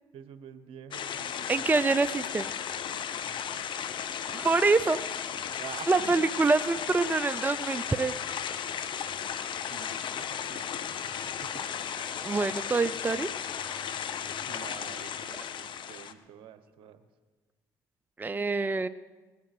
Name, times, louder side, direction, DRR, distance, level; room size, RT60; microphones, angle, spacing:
voice 1, 0.1-1.6 3.1-3.7 5.6-6.3 9.7-11.8 14.4-17.1, right 8 dB, 65° right, 10 dB, 1.2 m, -48 dB
sound 1, 0.9-16.1, left 8 dB, 55° left, 0.9 m, -35 dB
voice 2, 1.5-2.5 4.3-5.0 5.9-8.2 12.2-13.3 18.2-18.9, right 3 dB, 20° right, 14 dB, 0.5 m, -25 dB
20.0 x 8.3 x 6.1 m, 1.3 s
hypercardioid pair, 60°, 10 cm